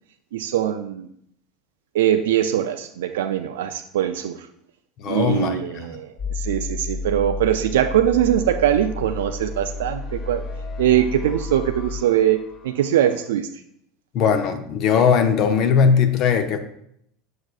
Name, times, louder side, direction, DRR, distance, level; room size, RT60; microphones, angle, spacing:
voice 1, 0.3-1.1 1.9-4.5 5.1-10.4 10.8-13.6, right 11 dB, 75° right, 8 dB, 0.3 m, -22 dB
voice 2, 5.0-5.8 14.1-16.6, left 6 dB, 50° left, 8 dB, 0.6 m, -19 dB
sound 1, 6.2-13.1, left 3 dB, 35° left, 1.2 m, -32 dB
6.5 x 6.5 x 2.4 m, 0.72 s
hypercardioid pair, 75°, 0 cm